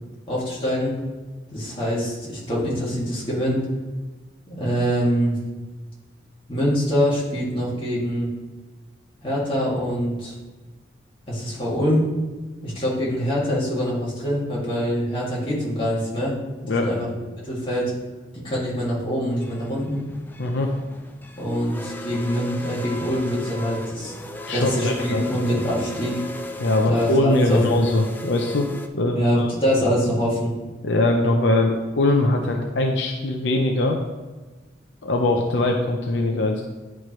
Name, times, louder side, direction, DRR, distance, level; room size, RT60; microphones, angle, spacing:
voice 1, 0.3-0.9 1.5-3.6 4.5-5.4 6.5-8.3 9.2-10.3 11.3-12.1 12.6-16.4 16.7-17.1 17.4-17.9 18.3-20.0 21.4-24.1 24.5-26.2 26.9-27.8 29.1-30.5, equal, 30° left, -6 dB, 2.2 m, -24 dB
sound 1, 19.3-28.9, left 1 dB, 10° left, 0.3 m, -37 dB
voice 2, 20.4-20.7 24.5-25.2 26.6-28.7 28.9-29.5 30.8-34.0 35.0-36.6, left 2 dB, 70° left, 2 dB, 0.6 m, -21 dB
10.0 x 4.5 x 3.1 m, 1.3 s
head